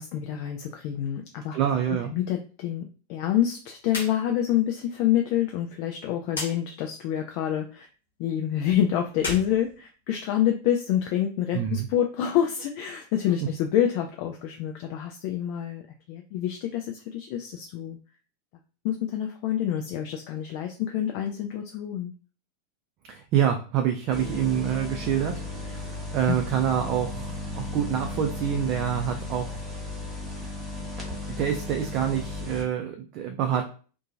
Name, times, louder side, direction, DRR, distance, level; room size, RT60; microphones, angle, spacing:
voice 1, 0.0-1.6 1.9-7.9 8.2-15.8 16.1-18.0 18.8-22.1 26.3-26.4, left 10 dB, 45° left, 3 dB, 0.3 m, -27 dB
voice 2, 1.5-2.1 11.5-11.9 23.1-29.6 31.4-33.6, right 9 dB, 40° right, 4 dB, 0.4 m, -27 dB
sound 1, 3.8-4.2 4.5-4.6 6.3-6.5 9.1-10.4, left 2 dB, 70° left, 1.1 m, -34 dB
sound 2, 24.1-32.6, left 2 dB, 15° right, 1.0 m, -35 dB
2.6 x 2.2 x 2.6 m, 0.38 s
figure-of-eight pair, 90°, 0 cm